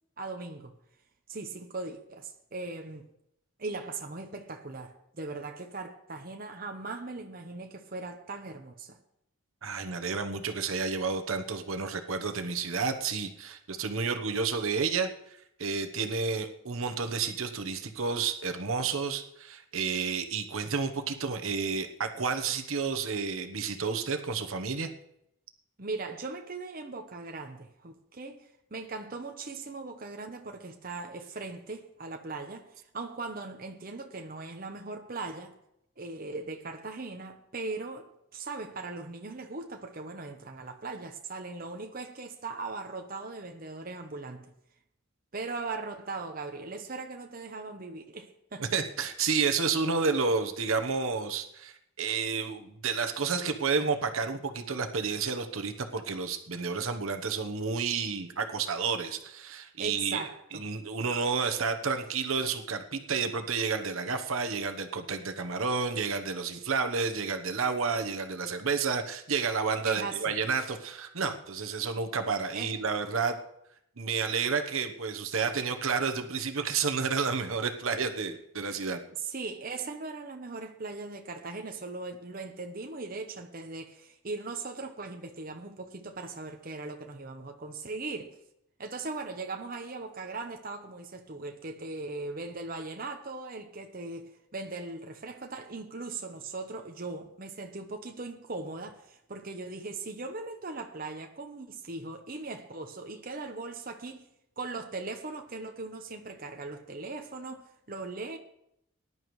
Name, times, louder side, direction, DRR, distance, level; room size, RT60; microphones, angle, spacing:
voice 1, 0.2-0.7 1.3-3.1 3.6-9.0 25.8-35.6 36.0-44.5 45.3-48.7 59.8-60.7 69.8-70.4 72.5-72.8 79.2-88.4 88.8-104.3 104.6-108.4, right 3 dB, 40° right, 0.9 m, -39 dB
voice 2, 9.6-24.9 48.6-60.2 60.5-73.4 74.0-79.0, right 5 dB, 75° right, 1.0 m, -30 dB
19.5 x 11.0 x 3.2 m
head